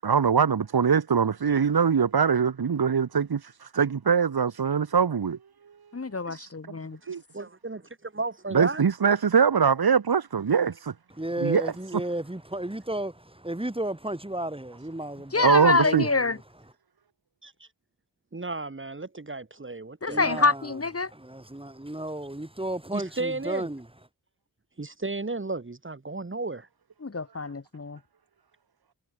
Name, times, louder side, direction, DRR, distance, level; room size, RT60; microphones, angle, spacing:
voice 1, 0.0-5.4 6.3-6.8 7.1-7.2 8.5-10.9 11.4-11.7 15.4-16.1, right 6 dB, 65° right, 1.9 m, -23 dB
voice 2, 5.9-7.0 15.3-16.4 20.0-21.1 27.0-28.0, left 3 dB, 35° left, 1.6 m, -26 dB
voice 3, 7.0-8.8 17.4-17.5 18.3-20.4 22.9-23.7 24.8-26.7, right 3 dB, 30° right, 2.2 m, -34 dB
voice 4, 11.2-16.4 20.1-20.7 21.1-23.9, right 1 dB, 15° right, 6.3 m, -33 dB
wide cardioid pair, 75°, 40 cm